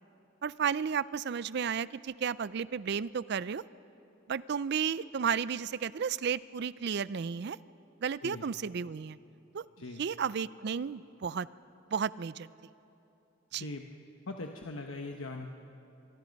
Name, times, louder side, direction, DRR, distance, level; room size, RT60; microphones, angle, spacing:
voice 1, 0.4-3.6 4.3-7.6 8.0-9.2 9.5-9.6 10.0-11.5 11.9-12.5 13.5-13.7, right 7 dB, 55° right, 19 dB, 0.4 m, -33 dB
voice 2, 13.5-13.9 14.3-15.5, left 2 dB, 85° left, 3 dB, 1.1 m, -40 dB
24.0 x 23.0 x 5.3 m, 3.0 s
head